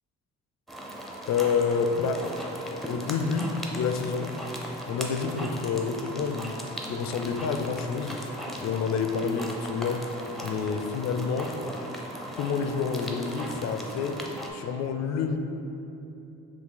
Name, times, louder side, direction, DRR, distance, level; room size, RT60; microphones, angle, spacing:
sound 1, 0.7-14.5, equal, ahead, 0.5 m, -38 dB
voice 1, 1.3-2.3 2.9-4.4 4.9-8.2 8.6-10.1 10.4-11.6 12.3-14.2 14.5-15.4, left 5 dB, 60° left, 6 dB, 0.4 m, -28 dB
5.9 x 2.3 x 3.9 m, 2.9 s
cardioid pair, 90°, 30 cm